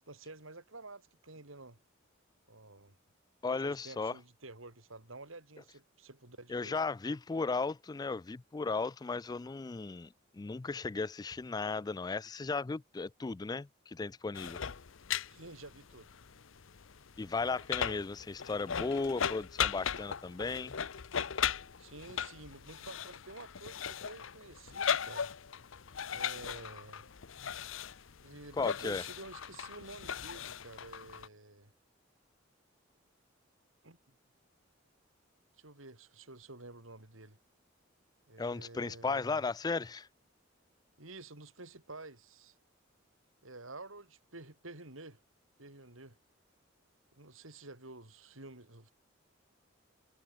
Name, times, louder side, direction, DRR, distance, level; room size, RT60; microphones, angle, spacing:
voice 1, 0.0-1.8 2.5-3.0 3.4-6.8 15.3-16.1 21.8-25.3 26.1-27.1 28.2-31.7 33.8-34.2 35.6-37.4 38.3-39.4 41.0-42.5 43.4-45.2 45.6-46.2 47.2-48.9, right 2 dB, 90° right, 4.7 m, -50 dB
voice 2, 3.4-4.2 6.5-14.6 17.2-20.8 28.6-29.0 38.4-40.1, left 4 dB, 20° left, 0.3 m, -35 dB
sound 1, 14.3-31.3, left 8 dB, 75° left, 0.8 m, -38 dB
head